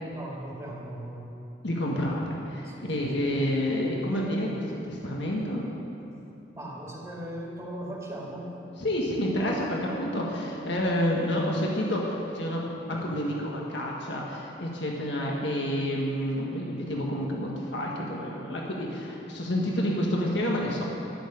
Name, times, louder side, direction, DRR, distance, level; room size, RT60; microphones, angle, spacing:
voice 1, 0.1-1.4 2.6-3.3 6.5-8.5 12.8-13.2, right 1 dB, 15° right, -3 dB, 1.9 m, -39 dB
voice 2, 1.6-5.7 8.8-12.6 12.9-20.9, equal, 70° left, -2 dB, 1.7 m, -29 dB
12.5 x 7.0 x 9.9 m, 2.9 s
head